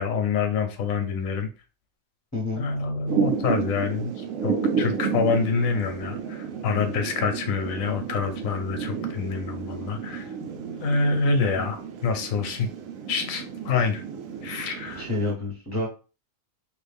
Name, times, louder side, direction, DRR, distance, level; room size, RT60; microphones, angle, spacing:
voice 1, 0.0-1.5 2.6-10.3 10.8-12.7 13.1-14.0 14.4-15.0, left 5 dB, 85° left, 6 dB, 1.1 m, -26 dB
voice 2, 2.3-2.7 11.4-11.6 14.8-15.9, left 2 dB, 15° left, -2 dB, 1.1 m, -29 dB
Thunder / Rain, 3.1-15.3, right 6 dB, 75° right, 1.0 m, -31 dB
3.3 x 2.5 x 3.3 m, 0.34 s
omnidirectional pair, 1.4 m